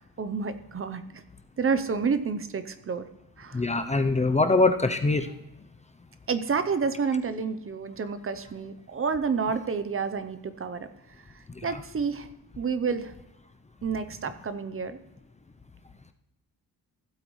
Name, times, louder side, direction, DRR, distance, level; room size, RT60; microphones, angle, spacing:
voice 1, 0.2-1.2 1.6-3.0 3.4-3.6 6.3-10.9 11.2-11.3 11.6-12.3 12.6-13.1 13.8-15.0, right 5 dB, 35° right, 11 dB, 0.7 m, -29 dB
voice 2, 3.5-5.3 11.7-11.8, left 3 dB, 20° left, 7 dB, 0.5 m, -23 dB
15.5 x 8.1 x 3.1 m, 0.94 s
wide cardioid pair, 145°, 36 cm